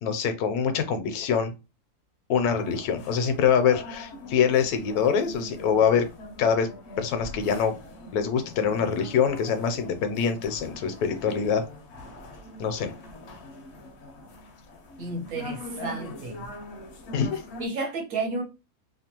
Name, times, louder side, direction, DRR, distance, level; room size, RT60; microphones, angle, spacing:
voice 1, 0.0-1.5 2.3-6.1 6.4-6.7 7.0-7.8 8.1-11.6 12.6-12.9 17.1-17.4, left 7 dB, 80° left, 1.1 m, -24 dB
sound 1, 2.5-17.7, left 1 dB, 60° left, 0.7 m, -43 dB
voice 2, 15.0-16.5 17.6-18.4, right 3 dB, 70° right, 1.2 m, -32 dB
2.9 x 2.2 x 2.8 m
omnidirectional pair, 1.6 m